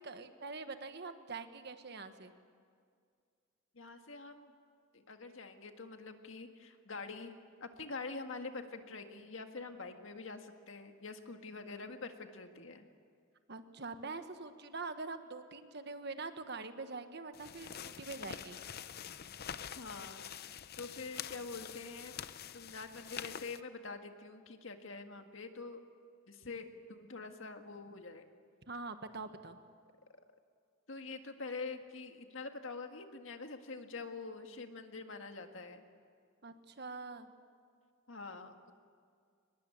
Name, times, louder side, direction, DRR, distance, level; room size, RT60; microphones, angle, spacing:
voice 1, 0.0-2.3 13.5-18.6 28.7-29.6 36.4-37.3, right 3 dB, 55° right, 9 dB, 1.3 m, -44 dB
voice 2, 3.7-4.5 4.9-12.9 19.8-20.2 20.8-22.2 22.5-25.8 26.3-28.2 30.9-35.9 38.1-38.7, left 4 dB, 65° left, 6 dB, 1.8 m, -45 dB
sound 1, 17.3-23.6, left 8 dB, 50° left, 0.6 m, -46 dB
23.0 x 21.0 x 8.8 m, 2.2 s
head